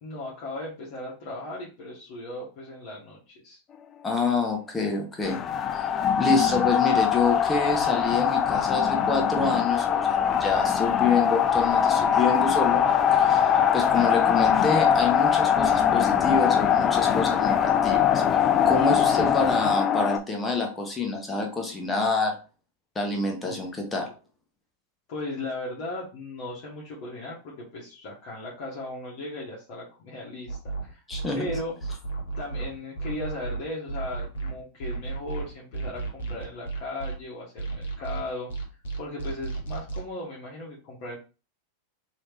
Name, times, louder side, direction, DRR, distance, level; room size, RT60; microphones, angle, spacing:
voice 1, 0.0-3.6 13.5-13.7 23.4-23.7 25.1-31.0 31.3-31.7 32.4-38.5 39.0-41.2, left 2 dB, 55° left, -5 dB, 1.3 m, -37 dB
voice 2, 4.0-5.4 5.7-5.8 6.2-12.8 13.2-18.2 18.6-22.4 22.9-24.1 31.1-31.5, left 3 dB, 15° left, 3 dB, 1.1 m, -27 dB
sound 1, 5.2-20.2, left 8 dB, 35° left, 0.4 m, -22 dB
sound 2, 30.5-37.1 37.6-40.0, right 4 dB, 70° left, 0.9 m, -33 dB
3.1 x 2.9 x 3.2 m, 0.33 s
figure-of-eight pair, 90°, 0 cm